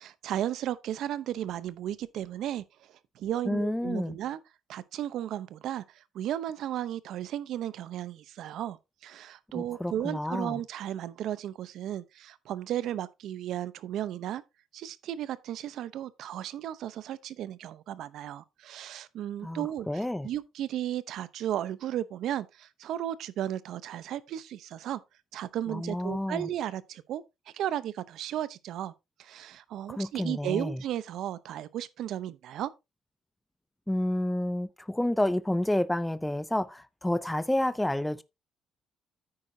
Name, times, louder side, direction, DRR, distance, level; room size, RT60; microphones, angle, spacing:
voice 1, 0.0-4.4 4.7-14.4 14.7-19.9 20.2-25.0 25.3-28.9 29.2-32.7, right 11 dB, 65° right, 0.7 m, -35 dB
voice 2, 3.5-4.2 9.5-10.6 19.4-20.3 25.7-26.5 29.9-30.8 33.9-38.2, left 1 dB, 5° left, 0.5 m, -30 dB
9.7 x 8.7 x 2.7 m
cardioid pair, 165°, 0 cm